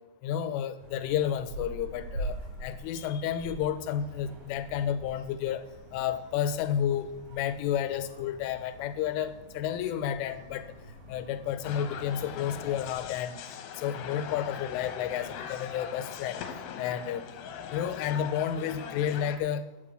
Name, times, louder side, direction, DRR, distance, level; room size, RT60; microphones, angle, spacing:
voice 1, 0.2-5.6 5.9-10.7 11.1-13.4 13.8-16.4 16.8-17.2 17.7-19.6, left 9 dB, 85° left, 11 dB, 3.3 m, -31 dB
sound 1, 0.8-13.1, right 1 dB, 60° right, 5.0 m, -44 dB
sound 2, 11.6-19.4, left 8 dB, 70° left, 2.9 m, -40 dB
14.5 x 5.6 x 7.7 m, 1.0 s
omnidirectional pair, 5.6 m